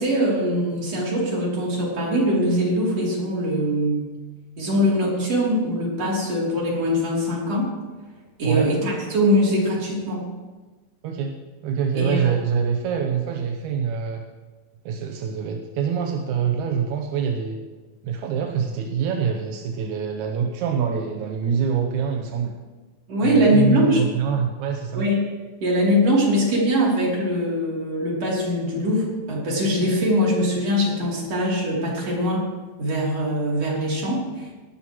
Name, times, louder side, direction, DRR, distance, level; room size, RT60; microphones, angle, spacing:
voice 1, 0.0-4.0 4.6-7.7 8.4-10.2 11.9-12.3 23.1-24.0 24.9-25.2 25.6-32.4 32.8-34.5, equal, 45° right, -4 dB, 4.1 m, -22 dB
voice 2, 11.0-11.4 11.6-14.2 14.9-17.6 18.0-22.5 23.2-25.1, right 7 dB, 75° right, 2 dB, 1.9 m, -25 dB
18.5 x 12.5 x 3.1 m, 1.3 s
omnidirectional pair, 4.3 m